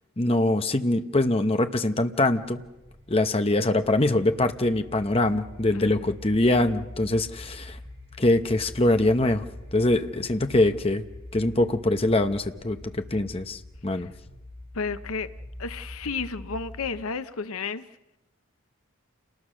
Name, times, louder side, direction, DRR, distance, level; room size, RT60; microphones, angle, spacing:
voice 1, 0.2-2.6 3.1-7.8 8.2-9.4 9.7-11.0 11.3-14.1, left 2 dB, 25° left, 8 dB, 0.9 m, -23 dB
sound 1, 2.6-17.1, left 1 dB, 25° right, 4.3 m, -44 dB
voice 2, 5.7-6.2 13.9-14.0 14.7-15.3 15.6-17.9, left 4 dB, 90° left, 12 dB, 0.9 m, -32 dB
28.5 x 20.0 x 6.3 m, 1.0 s
head